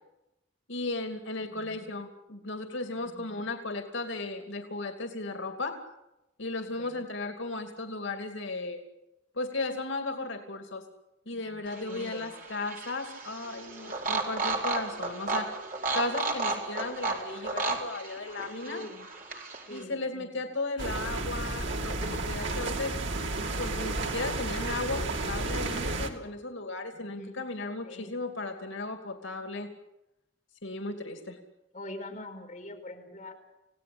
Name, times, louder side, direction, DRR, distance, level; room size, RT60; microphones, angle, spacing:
voice 1, 0.7-5.7 6.4-8.8 9.3-10.8 11.3-15.5 15.9-18.8 19.7-22.9 23.6-29.7 30.6-31.4, left 2 dB, 85° left, 5 dB, 2.7 m, -35 dB
voice 2, 1.4-1.9 3.0-3.4 6.6-7.1 11.3-12.3 18.6-19.1 19.7-20.4 23.1-23.6 26.9-27.5 27.8-28.2 31.7-33.3, left 1 dB, 40° left, 1 dB, 4.8 m, -44 dB
sound 1, 11.7-19.8, right 3 dB, 45° right, 4.4 m, -33 dB
sound 2, 20.8-26.1, right 2 dB, 85° right, 3.2 m, -32 dB
29.5 x 17.5 x 8.7 m, 0.92 s
head